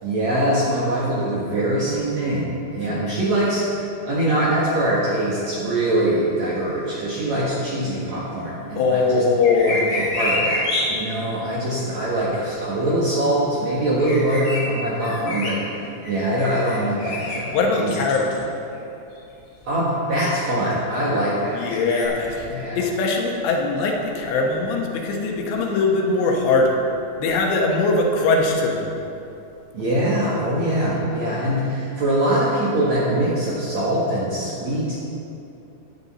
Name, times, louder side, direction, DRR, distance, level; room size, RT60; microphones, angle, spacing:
voice 1, 0.0-9.2 9.6-18.0 19.6-21.8 22.5-22.8 29.7-35.0, right 1 dB, 55° right, -7 dB, 2.1 m, -23 dB
voice 2, 8.8-9.8 17.5-18.4 21.5-22.5 22.8-26.8 27.2-28.9, left 3 dB, 80° left, 0 dB, 3.4 m, -21 dB
sound 1, 9.4-10.8 14.0-14.6 15.0-15.5 16.0-17.4 17.9-18.4 19.1-19.2 21.6-22.1, left 2 dB, 50° left, 3.9 m, -27 dB
13.5 x 10.0 x 4.2 m, 2.7 s
omnidirectional pair, 5.1 m